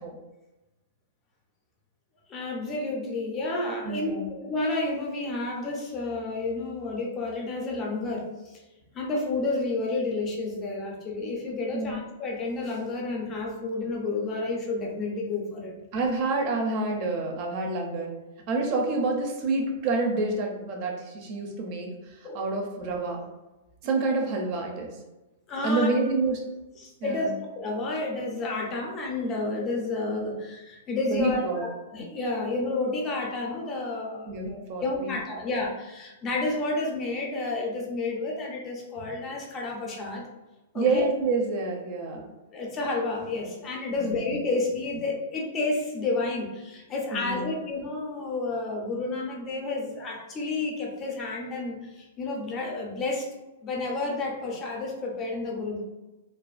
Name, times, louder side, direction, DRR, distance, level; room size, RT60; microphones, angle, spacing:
voice 1, 2.3-8.6 8.9-15.7 22.2-22.4 25.5-25.9 26.8-40.2 40.7-41.0 42.5-53.3 53.6-55.8, left 2 dB, 20° left, -1 dB, 0.5 m, -30 dB
voice 2, 3.8-4.3 11.7-11.9 15.9-18.1 18.5-23.2 23.8-24.9 25.6-26.4 27.0-27.3 31.1-31.6 34.3-35.1 40.7-42.3 43.9-44.1 47.1-47.5, right 3 dB, 40° right, 1 dB, 0.5 m, -28 dB
2.5 x 2.4 x 2.4 m, 1.1 s
hypercardioid pair, 155°, 0 cm